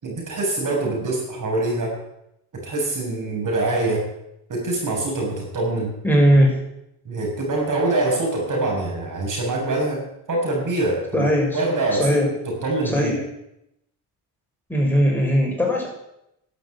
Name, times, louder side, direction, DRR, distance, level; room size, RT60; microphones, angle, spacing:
voice 1, 0.0-2.0 2.5-4.1 4.5-5.9 7.1-13.1, right 2 dB, 50° right, 0 dB, 7.0 m, -24 dB
voice 2, 6.0-6.6 11.1-11.6 11.9-12.3 12.8-13.2 14.7-15.9, equal, 5° left, -2 dB, 6.1 m, -19 dB
12.0 x 9.2 x 8.7 m, 0.82 s
supercardioid pair, 75°, 40 cm